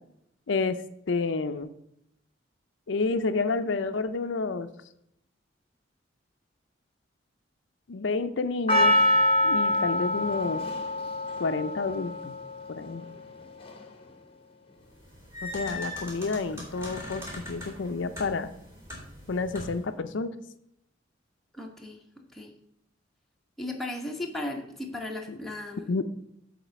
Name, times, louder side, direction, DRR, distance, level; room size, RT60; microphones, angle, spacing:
voice 1, 0.5-1.7 2.9-4.7 7.9-9.0 9.4-10.6 11.4-12.4 12.7-13.0 15.4-18.5 19.3-20.3 25.3-25.4 25.9-26.0, left 4 dB, 75° left, 10 dB, 0.5 m, -29 dB
Percussion, 8.7-13.0 13.7-13.8, left 1 dB, 30° left, 0.9 m, -25 dB
sound 1, 14.9-19.9, left 1 dB, 15° right, 2.9 m, -41 dB
voice 2, 21.5-22.0 22.3-22.5 23.6-25.9, left 1 dB, ahead, 0 dB, 1.0 m, -36 dB
7.3 x 4.3 x 6.9 m, 0.76 s
head